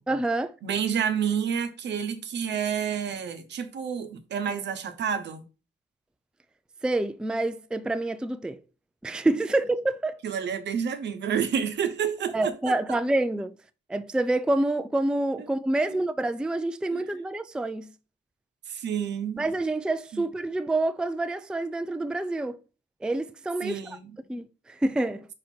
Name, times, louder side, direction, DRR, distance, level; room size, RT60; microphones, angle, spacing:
voice 1, 0.1-0.6 6.8-8.6 9.0-10.2 12.3-13.5 13.9-17.9 19.4-22.6 23.0-24.0 24.3-25.3, right 2 dB, 5° right, 0.4 m, -27 dB
voice 2, 0.6-5.4 10.2-12.8 15.9-16.0 16.9-17.0 18.7-19.4 20.1-20.2 23.6-24.1, right 7 dB, 60° right, 0.9 m, -29 dB
4.9 x 4.4 x 4.4 m
cardioid pair, 90°, 20 cm